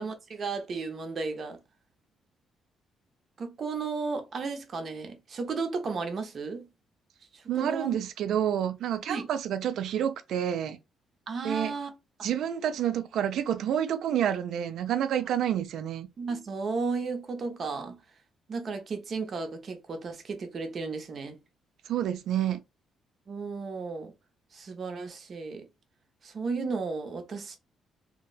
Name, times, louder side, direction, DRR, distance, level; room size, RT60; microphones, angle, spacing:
voice 1, 0.0-1.6 3.4-6.7 7.3-7.9 9.1-9.3 11.3-11.9 12.2-12.3 16.2-18.0 18.5-21.4 23.3-24.1 24.5-25.7 26.2-27.6, right 4 dB, 50° right, 0.8 m, -34 dB
voice 2, 7.5-10.8 11.4-11.7 12.2-16.1 21.9-22.6, right 10 dB, 75° right, 0.4 m, -29 dB
2.8 x 2.1 x 3.9 m
cardioid pair, 90°, 0 cm